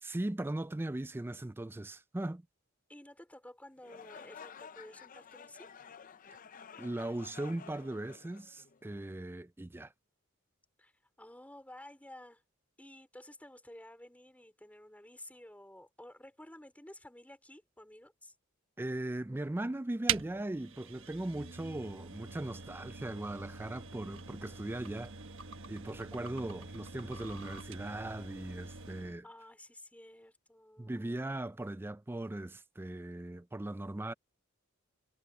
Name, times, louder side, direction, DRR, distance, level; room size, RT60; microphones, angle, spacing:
voice 1, 0.0-2.4 6.8-9.9 18.8-25.1 25.7-29.3 30.8-34.1, right 1 dB, 10° right, 0.4 m, -39 dB
voice 2, 2.9-5.7 10.8-10.9 11.2-12.4 12.8-18.3 29.2-31.1, left 1 dB, 5° left, 4.6 m, -53 dB
sound 1, 3.8-9.0, left 6 dB, 40° left, 0.6 m, -52 dB
sound 2, 20.1-29.2, right 7 dB, 65° right, 1.5 m, -42 dB
head